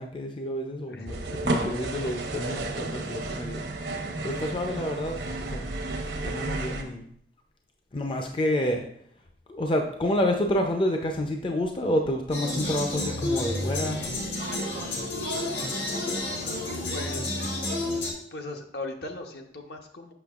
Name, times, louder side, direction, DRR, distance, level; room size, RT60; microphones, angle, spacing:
voice 1, 0.0-5.8 6.1-7.1 7.9-8.9 9.5-14.0, left 1 dB, 30° left, 3 dB, 0.4 m, -29 dB
sound 1, 1.1-6.8, right 2 dB, 85° right, 0.8 m, -32 dB
sound 2, 12.3-18.1, left 2 dB, 85° left, 1.3 m, -30 dB
sound 3, 12.6-18.0, right 3 dB, 40° right, 0.4 m, -44 dB
voice 2, 16.9-17.3 18.3-20.1, left 2 dB, 65° left, 4 dB, 0.8 m, -39 dB
6.9 x 5.9 x 2.4 m, 0.66 s
head